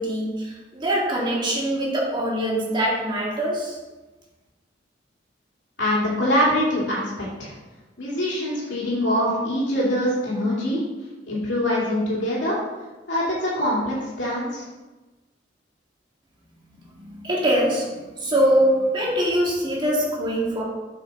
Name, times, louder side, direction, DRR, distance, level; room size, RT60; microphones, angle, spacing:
voice 1, 0.0-3.8 17.1-17.9 18.2-20.6, equal, 25° right, -4 dB, 2.0 m, -23 dB
voice 2, 5.8-7.5 8.0-10.8 11.3-12.6 13.1-14.7, equal, 80° left, -6 dB, 2.5 m, -24 dB
7.6 x 5.7 x 4.1 m, 1.2 s
head